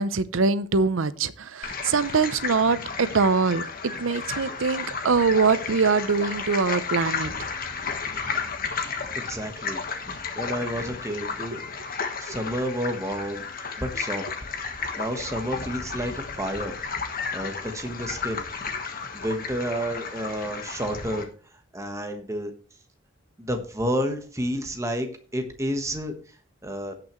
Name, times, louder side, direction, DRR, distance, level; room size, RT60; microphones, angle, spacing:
voice 1, 0.0-7.3, right 4 dB, 75° right, 15 dB, 0.7 m, -23 dB
sound 1, 1.6-21.2, left 5 dB, 45° left, 1.4 m, -33 dB
voice 2, 9.1-9.8 10.1-11.6 12.2-14.2 15.0-16.7 17.3-18.4 19.1-21.3 21.7-22.5 23.4-26.1 26.6-26.9, equal, 15° right, 6 dB, 1.3 m, -30 dB
17.0 x 6.0 x 3.1 m, 0.40 s
head